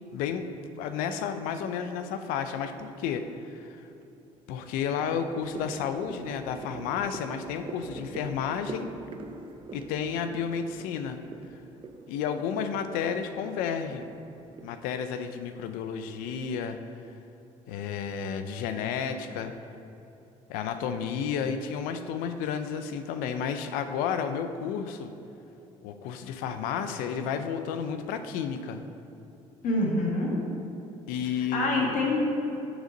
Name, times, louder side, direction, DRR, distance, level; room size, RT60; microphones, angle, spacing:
voice 1, 0.1-3.9 4.5-8.9 9.7-11.2 12.1-14.1 14.6-16.8 17.7-19.5 20.5-25.1 25.8-28.8 31.1-31.7, left 7 dB, 90° left, 9 dB, 0.5 m, -32 dB
sound 1, 3.5-3.6 4.0-14.8, right 3 dB, 35° right, 0.6 m, -44 dB
voice 2, 29.6-30.3 31.5-32.2, left 2 dB, 70° left, -2 dB, 1.7 m, -26 dB
7.9 x 3.9 x 6.4 m, 2.8 s
supercardioid pair, 80°, 14 cm